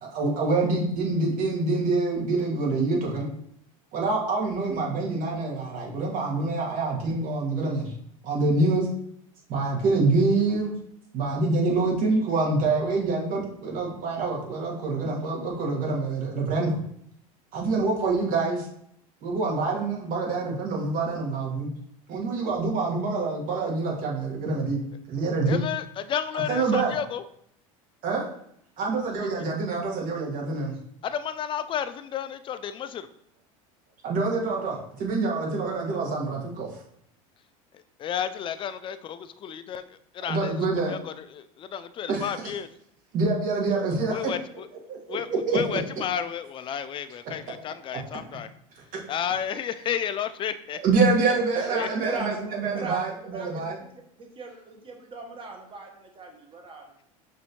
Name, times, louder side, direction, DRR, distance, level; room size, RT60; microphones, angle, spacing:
voice 1, 0.0-3.3 3.9-7.9 8.2-8.9 9.5-10.7 11.1-16.8 17.5-18.7 19.2-21.7 22.1-24.8 25.1-25.6 26.5-26.9 28.0-28.2 28.8-30.7 34.0-36.7 40.2-40.9 42.1-42.3 43.1-44.2 44.9-45.6 47.9-48.0 48.9-49.0 50.8-53.8, right 3 dB, 50° right, -2 dB, 1.6 m, -26 dB
voice 2, 25.5-27.2 31.0-33.1 38.0-39.8 40.1-40.6 40.9-42.7 44.1-44.7 45.1-45.3 45.5-48.5 49.1-50.8 51.8-51.9, left 9 dB, 30° left, 12 dB, 0.4 m, -32 dB
voice 3, 51.5-53.7 54.2-56.9, right 3 dB, 30° right, 2 dB, 1.2 m, -36 dB
6.0 x 2.7 x 3.0 m, 0.70 s
hypercardioid pair, 95°, 18 cm